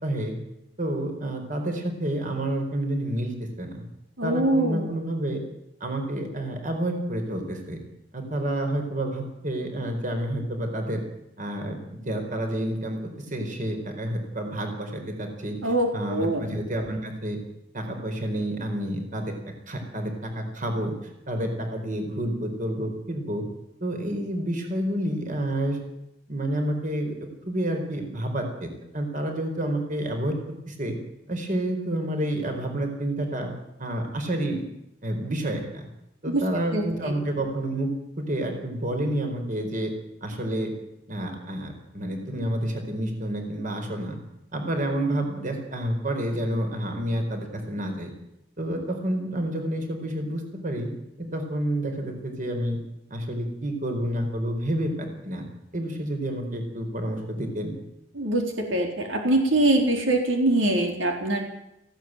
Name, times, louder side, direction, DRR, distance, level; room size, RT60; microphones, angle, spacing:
voice 1, 0.0-0.3 0.8-3.7 4.2-5.4 5.8-7.8 8.1-11.0 11.4-13.0 13.3-17.4 17.7-19.3 19.7-20.9 21.3-23.4 23.8-25.8 26.3-27.1 27.5-30.4 30.7-31.0 31.3-33.5 33.8-34.6 35.0-35.9 36.2-37.9 38.2-39.9 40.2-40.7 41.1-44.2 44.5-48.1 48.6-50.9 51.2-52.8 53.1-55.5 55.7-57.7, right 1 dB, 45° right, 4 dB, 4.5 m, -29 dB
voice 2, 4.2-4.9 15.6-16.4 36.3-36.4 36.7-37.1 58.2-61.4, right 1 dB, 85° right, 3 dB, 4.1 m, -23 dB
18.0 x 16.0 x 9.2 m, 0.86 s
head